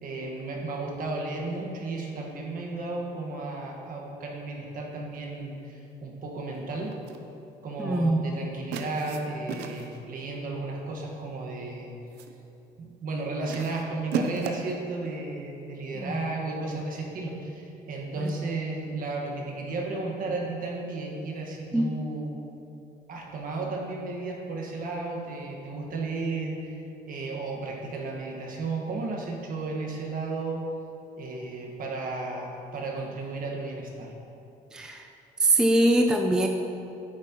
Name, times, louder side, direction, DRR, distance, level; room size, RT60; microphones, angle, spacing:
voice 1, 0.0-7.0 7.6-11.9 12.8-22.3 23.1-30.7 31.2-34.1, right 3 dB, 55° right, -1 dB, 1.6 m, -34 dB
sound 1, 6.9-7.3 8.7-10.1 11.1-11.4 11.8-12.4 13.5-14.8, right 5 dB, 80° right, 0.7 m, -35 dB
voice 2, 7.8-8.2 16.0-16.2 21.7-21.8 34.7-35.0 35.4-36.5, right 1 dB, 5° right, 3 dB, 0.5 m, -22 dB
9.3 x 8.8 x 3.0 m, 2.9 s
cardioid pair, 110°, 17 cm